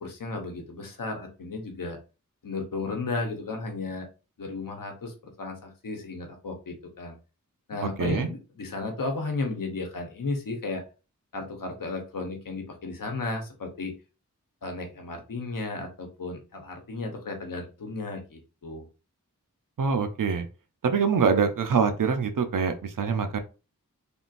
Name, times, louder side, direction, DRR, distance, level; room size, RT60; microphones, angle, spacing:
voice 1, 0.0-2.0 2.4-4.1 4.4-7.1 7.7-10.8 11.3-13.9 14.6-18.9, left 3 dB, 75° left, 4 dB, 0.9 m, -34 dB
voice 2, 7.8-8.3 19.8-20.5 20.8-23.4, right 6 dB, 70° right, 7 dB, 0.6 m, -25 dB
3.5 x 2.5 x 2.5 m, 0.32 s
wide cardioid pair, 50°, 33 cm